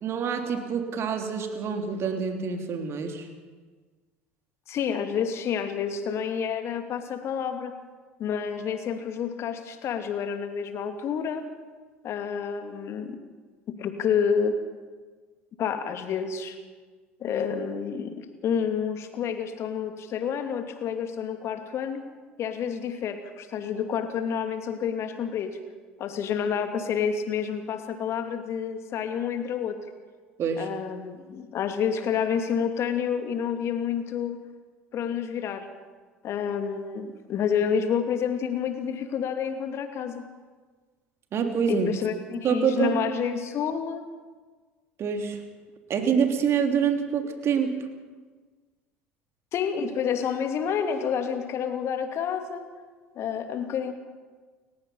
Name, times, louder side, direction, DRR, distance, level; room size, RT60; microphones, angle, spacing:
voice 1, 0.0-3.3 30.4-30.7 41.3-42.0 42.3-42.9 45.0-45.4 45.9-47.8, right 7 dB, 40° right, 4 dB, 3.3 m, -26 dB
voice 2, 4.7-7.7 8.2-11.5 12.0-13.2 13.7-14.6 15.6-16.6 17.2-22.0 22.4-25.6 26.0-29.8 30.6-34.4 34.9-35.7 36.2-40.3 41.7-44.1 49.5-52.6 53.2-53.9, left 7 dB, 45° left, 7 dB, 2.4 m, -29 dB
29.5 x 15.5 x 5.7 m, 1.4 s
figure-of-eight pair, 65°, 7 cm